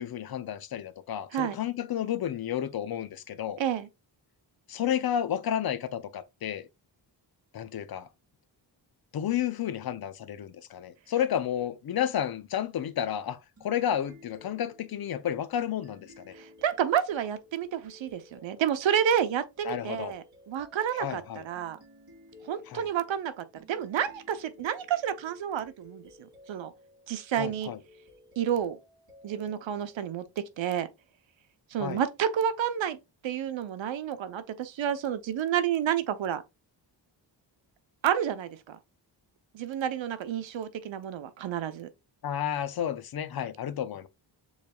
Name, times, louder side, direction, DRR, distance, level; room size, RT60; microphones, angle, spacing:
voice 1, 0.0-3.6 4.7-6.7 7.5-8.1 9.1-16.3 19.6-20.1 21.0-21.4 22.7-22.9 27.4-27.8 31.8-32.0 42.2-44.1, left 10 dB, 55° left, 0.5 m, -31 dB
voice 2, 3.6-3.9 16.3-21.8 22.4-26.7 27.1-27.7 28.4-28.8 29.2-30.9 31.7-33.0 33.2-36.4 38.0-38.8 39.5-41.9, right 9 dB, 85° right, 0.8 m, -30 dB
sound 1, 13.6-30.7, left 2 dB, 40° right, 3.2 m, -56 dB
7.1 x 3.2 x 2.3 m
wide cardioid pair, 175°, 44 cm